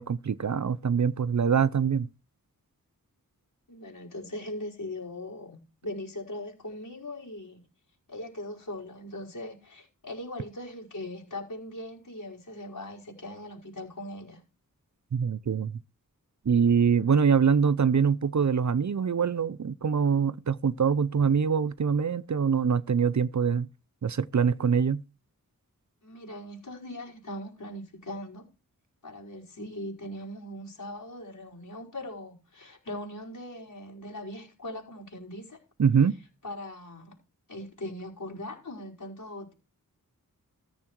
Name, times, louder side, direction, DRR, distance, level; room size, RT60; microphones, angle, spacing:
voice 1, 0.0-2.1 15.1-15.8 16.4-23.7 24.0-25.0 35.8-36.2, right 6 dB, 55° right, 0.6 m, -24 dB
voice 2, 3.7-7.6 8.1-14.4 26.0-28.4 29.0-35.6 36.4-37.2 37.5-39.5, left 1 dB, 65° left, 5.3 m, -40 dB
14.5 x 7.2 x 4.6 m
wide cardioid pair, 80°, 35 cm